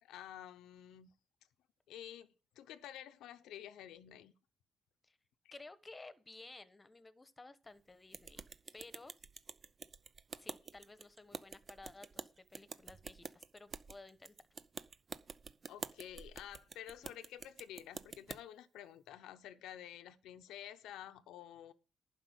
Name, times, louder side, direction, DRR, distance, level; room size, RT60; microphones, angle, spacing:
voice 1, 0.0-1.1 1.9-4.3 15.7-21.7, left 11 dB, 85° left, 0.8 m, -50 dB
voice 2, 5.5-8.4 8.7-9.2 10.4-14.3, left 3 dB, 20° left, 1.1 m, -55 dB
sound 1, 8.1-18.4, right 5 dB, 40° right, 0.6 m, -49 dB
11.5 x 5.3 x 8.1 m
cardioid pair, 90°, 0 cm